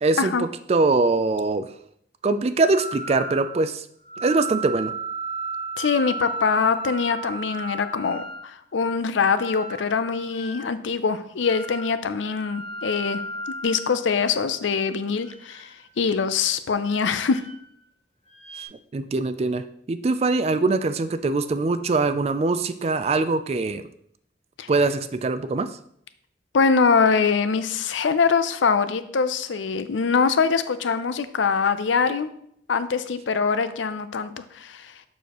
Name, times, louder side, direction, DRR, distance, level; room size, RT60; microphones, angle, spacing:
voice 1, 0.0-1.7 2.2-3.8 4.2-4.9 18.9-23.8 24.7-25.7, right 3 dB, 35° right, 12 dB, 0.3 m, -23 dB
sound 1, 2.7-3.7 4.0-8.5 9.3-10.7 11.4-12.0 12.3-14.5 15.1-16.0 16.9-17.9 18.3-18.7, right 2 dB, 30° left, 2.0 m, -35 dB
voice 2, 5.8-13.2 13.6-15.7 16.0-17.4 24.6-24.7 26.5-32.3 32.7-34.9, left 5 dB, 85° left, 12 dB, 0.5 m, -23 dB
7.0 x 6.3 x 3.0 m, 0.69 s
head